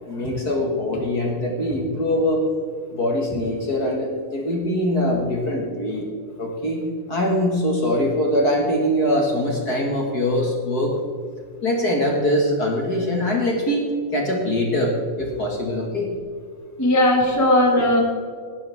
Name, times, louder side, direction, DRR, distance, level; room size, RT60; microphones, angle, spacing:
voice 1, 0.1-2.4 2.9-6.1 6.4-11.0 11.6-16.1, left 1 dB, 35° left, 0 dB, 2.0 m, -23 dB
voice 2, 16.8-18.0, left 1 dB, 10° left, -1 dB, 1.2 m, -18 dB
18.0 x 11.0 x 3.6 m, 2.1 s
omnidirectional pair, 3.6 m